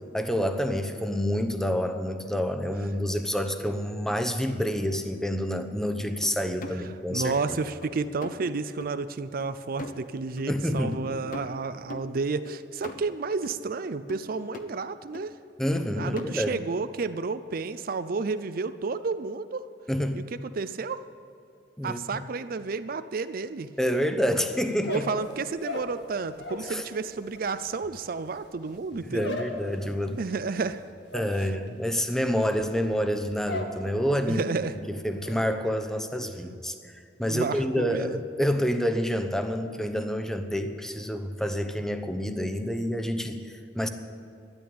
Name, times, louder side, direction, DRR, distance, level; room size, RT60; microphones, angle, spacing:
voice 1, 0.1-7.6 10.5-11.0 15.6-16.6 19.9-20.2 21.8-22.2 23.8-25.1 26.7-26.8 29.1-30.2 31.1-34.4 34.9-36.7 37.2-43.9, equal, 5° left, 7 dB, 0.8 m, -28 dB
sound 1, 6.2-6.9 7.2-7.6 7.8-8.4 8.8-9.0 9.4-9.5 9.8-10.5 10.9-11.1 11.3-12.1 12.5-13.0 13.4-13.6 14.1-14.7 15.1-15.4 15.7-16.3, left 1 dB, 50° left, 1.0 m, -41 dB
voice 2, 7.1-15.3 15.9-19.6 20.1-20.2 20.5-21.0 21.8-23.7 24.9-29.4 30.2-30.8 34.3-34.7 37.3-38.2, right 4 dB, 55° right, 12 dB, 0.5 m, -31 dB
sound 2, 24.7-26.8 27.0-33.8 34.1-34.6 34.9-35.4, left 2 dB, 75° left, 1.7 m, -38 dB
12.5 x 10.5 x 8.7 m, 2.3 s
head